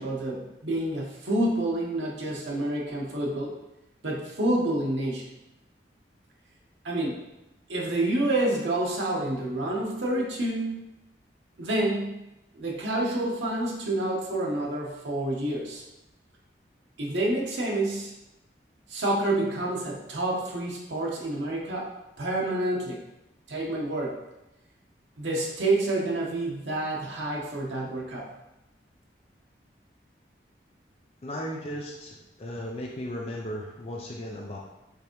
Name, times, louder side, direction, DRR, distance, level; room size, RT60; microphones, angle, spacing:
voice 1, 0.0-3.5 4.0-5.3 6.8-7.2 7.7-10.9 11.6-12.2 12.5-15.8 17.0-18.1 18.9-21.9 22.2-23.0 23.5-24.2 25.2-28.3, right 1 dB, 85° right, -3 dB, 1.0 m, -28 dB
voice 2, 31.2-34.6, equal, 35° left, -1 dB, 0.5 m, -36 dB
5.0 x 3.4 x 3.1 m, 0.93 s
head